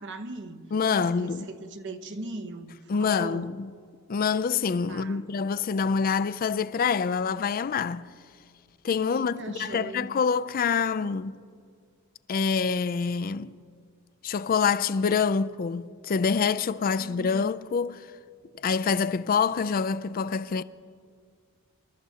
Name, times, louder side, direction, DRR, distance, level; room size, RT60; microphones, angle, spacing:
voice 1, 0.0-3.5 4.9-5.3 9.0-10.1 17.0-17.5, right 2 dB, 55° right, 0.9 m, -40 dB
voice 2, 0.7-1.5 2.9-3.7 4.1-8.1 8.8-11.3 12.3-13.6 14.2-18.1 18.6-20.6, left 5 dB, 40° left, 0.4 m, -26 dB
27.0 x 12.5 x 2.8 m
head